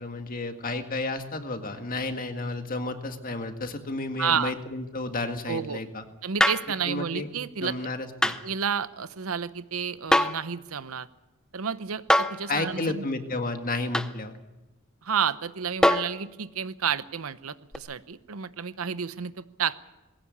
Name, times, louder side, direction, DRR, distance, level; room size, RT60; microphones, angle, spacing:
voice 1, 0.0-6.0 6.9-7.3 7.6-8.4 12.5-14.3, left 2 dB, 40° left, 6 dB, 1.9 m, -32 dB
voice 2, 4.2-4.5 5.5-5.8 6.2-7.8 8.4-11.1 11.5-13.1 15.0-19.7, right 7 dB, 90° right, 14 dB, 0.8 m, -30 dB
sound 1, 6.4-6.7 8.2-8.4 10.1-10.5 12.1-12.4 13.9-14.1 15.8-16.2 17.7-17.8, left 1 dB, 5° left, 0.6 m, -22 dB
20.5 x 17.0 x 8.5 m, 1.0 s
head